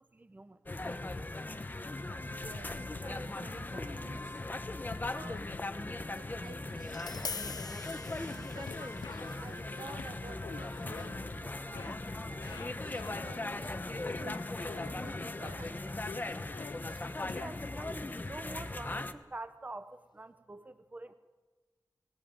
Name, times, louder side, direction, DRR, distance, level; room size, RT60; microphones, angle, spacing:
voice 1, 0.1-0.6 17.3-21.1, right 2 dB, 25° right, 11 dB, 0.8 m, -46 dB
sound 1, 0.7-19.1, left 2 dB, 25° left, 1.2 m, -39 dB
sound 2, 2.1-3.6 4.8-6.2 6.5-11.5 11.7-13.4 13.8-15.0 16.0-17.8 18.3-18.4, left 6 dB, 90° left, 0.7 m, -49 dB
voice 2, 2.2-4.4 5.1-5.5 6.1-7.8 8.1-11.9 12.3-16.1, right 4 dB, 80° right, 5 dB, 2.9 m, -52 dB
Tap, 6.8-12.9, left 5 dB, 60° left, 0.9 m, -47 dB
20.0 x 19.5 x 9.1 m, 1.3 s
wide cardioid pair, 120°, 7 cm